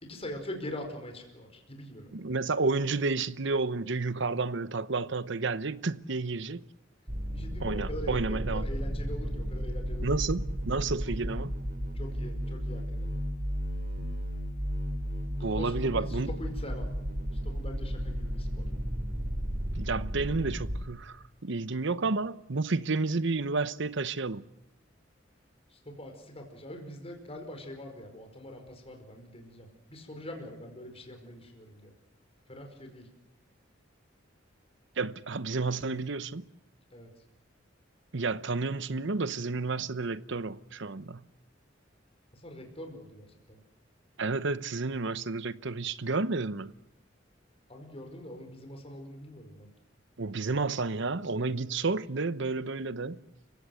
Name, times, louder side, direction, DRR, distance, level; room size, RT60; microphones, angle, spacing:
voice 1, 0.0-2.1 7.3-10.2 11.0-11.4 11.9-13.1 15.5-16.9 17.3-18.7 25.7-31.9 32.5-33.1 36.9-37.1 42.3-43.6 47.7-49.7, left 1 dB, 30° left, 5.0 m, -43 dB
voice 2, 2.1-6.6 7.6-8.6 10.0-11.5 15.4-16.3 19.7-21.2 21.4-24.4 35.0-36.4 38.1-41.2 44.2-46.7 50.2-53.2, right 3 dB, 65° right, 0.9 m, -31 dB
sound 1, 7.1-20.8, equal, 45° right, 3.2 m, -33 dB
30.0 x 16.5 x 7.8 m
head